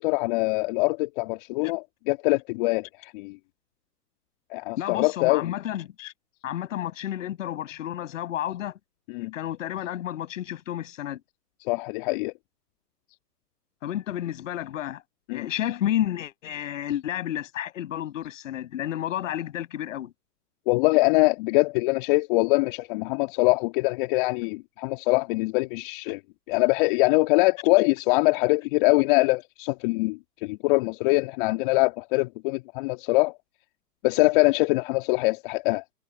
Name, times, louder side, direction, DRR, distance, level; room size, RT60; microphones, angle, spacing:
voice 1, 0.0-3.4 4.5-5.5 9.1-9.3 11.6-12.3 15.3-15.5 20.7-26.2 26.5-33.3 34.0-35.8, left 24 dB, 30° left, 1.9 m, -23 dB
voice 2, 4.8-6.1 6.4-8.8 9.3-11.2 13.8-15.0 15.3-20.1, left 11 dB, 50° left, 6.6 m, -31 dB
figure-of-eight pair, 125°, 49 cm